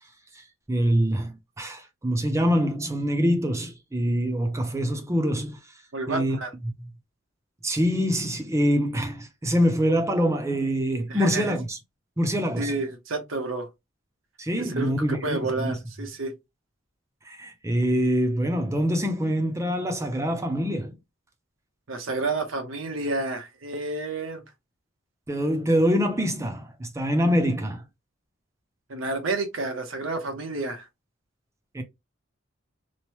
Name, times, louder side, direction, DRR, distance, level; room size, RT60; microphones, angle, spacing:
voice 1, 0.7-5.6 6.1-6.4 7.6-11.8 12.2-12.8 14.4-15.8 17.3-21.0 25.3-27.8 31.7-31.8, equal, 15° right, 0.5 m, -25 dB
voice 2, 5.9-6.5 11.1-11.6 12.6-13.7 14.6-16.3 21.9-24.4 28.9-30.9, right 3 dB, 85° right, 0.8 m, -30 dB
3.1 x 2.1 x 2.9 m
head